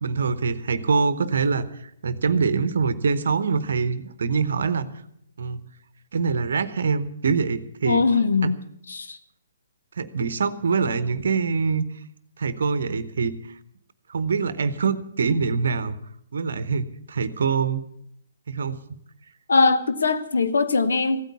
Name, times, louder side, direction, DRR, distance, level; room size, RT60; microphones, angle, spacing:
voice 1, 0.0-5.0 5.4-5.6 6.1-8.0 10.0-11.8 12.4-13.4 14.1-16.0 16.3-17.8 18.5-18.8, right 5 dB, 60° right, 0.9 m, -24 dB
voice 2, 7.8-8.6 8.9-9.2 19.5-21.2, left 4 dB, 65° left, 1.0 m, -21 dB
15.5 x 9.1 x 8.3 m
figure-of-eight pair, 130°, 0 cm